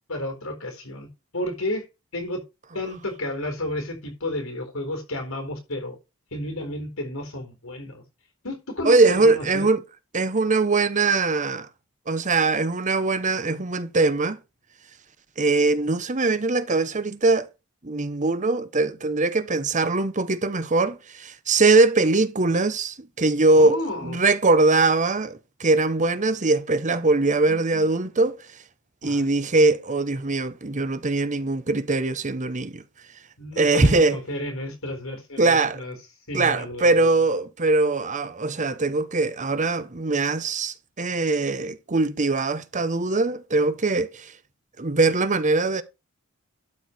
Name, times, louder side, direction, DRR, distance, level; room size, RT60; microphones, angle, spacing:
voice 1, 0.1-1.1 1.3-1.9 2.1-2.4 2.7-6.0 6.3-8.0 8.4-9.7 23.6-24.2 29.0-29.3 33.4-36.0 36.3-37.1, left 1 dB, 80° left, 4.1 m, -32 dB
voice 2, 8.8-9.8 10.1-11.7 12.1-14.4 15.4-17.5 17.8-28.4 29.0-32.8 33.6-34.2 35.4-35.8 36.3-44.3 44.8-45.8, right 3 dB, 35° right, 1.0 m, -21 dB
12.0 x 4.7 x 6.1 m
head